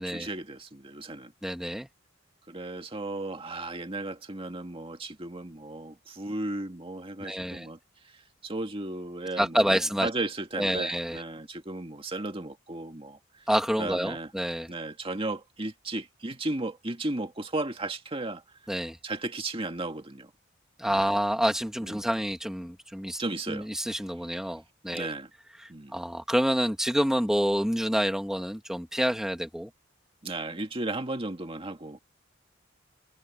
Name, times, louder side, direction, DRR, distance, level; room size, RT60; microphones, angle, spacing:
voice 1, 0.0-1.3 2.5-7.8 8.0-13.5 13.8-14.3 14.7-18.4 19.0-20.3 20.8-21.0 21.8-22.0 23.2-23.7 24.9-25.3 25.7-26.0 30.2-32.0, right 2 dB, 30° right, 2.1 m, -35 dB
voice 2, 1.4-1.9 7.2-7.7 9.4-10.1 10.6-11.2 13.5-14.7 18.7-19.0 20.8-23.2 23.5-25.1 25.6-29.7, equal, 5° right, 1.7 m, -28 dB
head